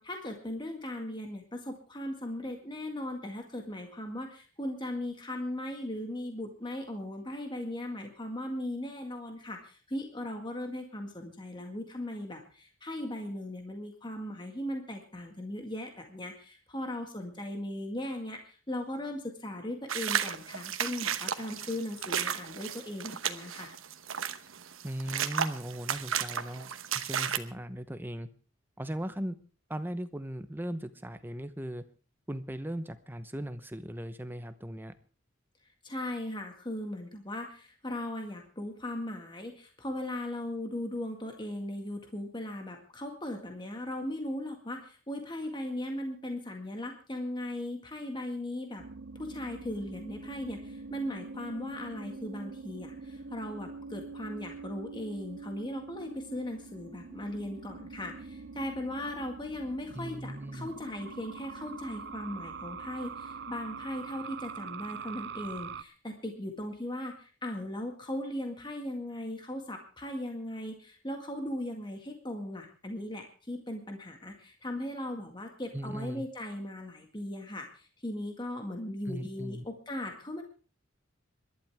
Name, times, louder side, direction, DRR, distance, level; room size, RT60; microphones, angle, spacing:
voice 1, 0.0-23.7 35.8-48.8 49.2-80.4, left 1 dB, 25° left, 3 dB, 1.9 m, -38 dB
sound 1, 19.9-27.4, right 8 dB, 90° right, 1.1 m, -33 dB
voice 2, 24.8-28.3 28.8-29.4 29.7-31.8 32.3-34.9 59.9-60.7 75.7-76.3 79.1-79.6, right 1 dB, 10° right, 10 dB, 0.9 m, -38 dB
sound 2, 48.8-65.8, right 4 dB, 55° right, 0.6 m, -44 dB
26.5 x 12.0 x 3.5 m, 0.38 s
head